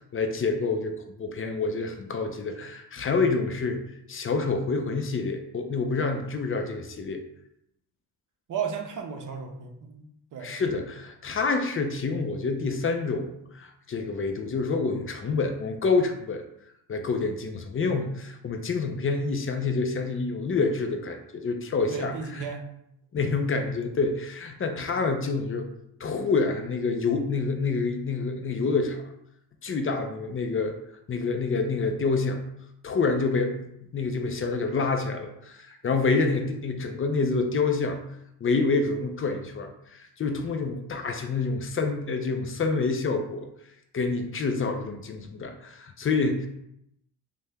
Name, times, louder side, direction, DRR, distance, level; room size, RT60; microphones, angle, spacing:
voice 1, 0.1-3.8 4.1-7.2 10.4-16.4 16.9-22.5 23.1-25.7 26.0-29.0 29.6-30.7 31.1-32.4 32.8-38.0 38.4-43.5 43.9-46.5, left 4 dB, 30° left, 5 dB, 0.5 m, -27 dB
voice 2, 8.5-10.1 10.3-10.6 21.9-22.6, right 6 dB, 40° right, 3 dB, 0.7 m, -35 dB
2.6 x 2.2 x 3.4 m, 0.79 s
hypercardioid pair, 50°, 47 cm